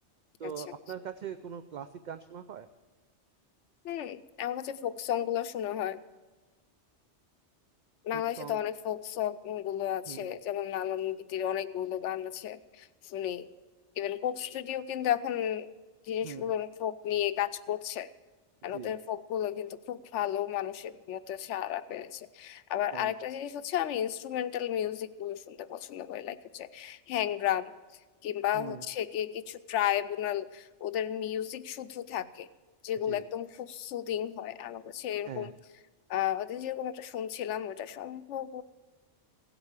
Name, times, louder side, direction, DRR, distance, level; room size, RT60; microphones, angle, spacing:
voice 1, 0.4-2.7 8.1-8.6 10.1-10.3 16.2-16.5 18.7-19.0 22.9-23.1 28.5-28.8 33.1-33.2 35.2-35.5, right 8 dB, 55° right, 10 dB, 0.5 m, -41 dB
voice 2, 3.8-6.0 8.0-13.4 14.0-15.7 16.0-18.1 18.6-27.7 28.2-32.5 32.8-35.5 36.1-38.6, left 10 dB, 85° left, 14 dB, 0.9 m, -33 dB
16.0 x 8.0 x 7.2 m, 1.3 s
omnidirectional pair, 1.2 m